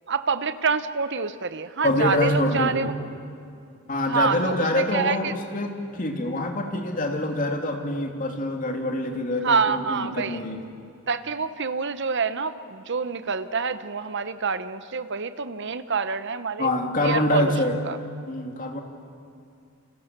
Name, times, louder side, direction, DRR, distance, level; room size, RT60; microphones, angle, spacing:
voice 1, 0.1-2.9 4.1-5.3 9.4-10.4 11.1-16.7 17.0-17.5 17.8-18.0, right 5 dB, 55° right, 12 dB, 1.0 m, -27 dB
voice 2, 1.8-2.9 3.9-10.6 16.6-17.8 18.3-18.8, left 1 dB, 40° left, 3 dB, 2.7 m, -25 dB
28.5 x 26.0 x 6.8 m, 2.4 s
head